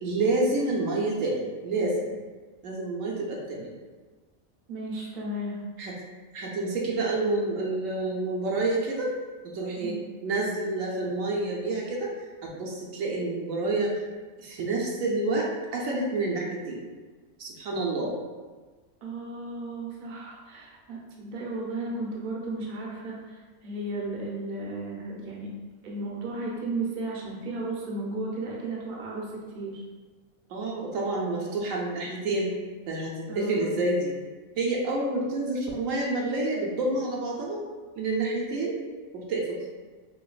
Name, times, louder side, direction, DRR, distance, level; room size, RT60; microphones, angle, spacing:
voice 1, 0.0-2.2 2.6-3.7 5.8-5.9 6.3-9.1 9.5-10.0 10.2-12.1 12.4-14.0 14.4-15.5 15.7-16.8 17.4-18.1 30.5-32.6 32.9-34.1 34.6-37.6 38.0-38.8 39.1-39.7, right 2 dB, 75° right, -2 dB, 1.0 m, -28 dB
voice 2, 4.7-5.6 9.8-10.0 19.0-25.5 25.8-29.8 33.3-33.8, right 2 dB, 50° right, -3 dB, 0.7 m, -34 dB
5.2 x 2.3 x 2.4 m, 1.3 s
omnidirectional pair, 1.5 m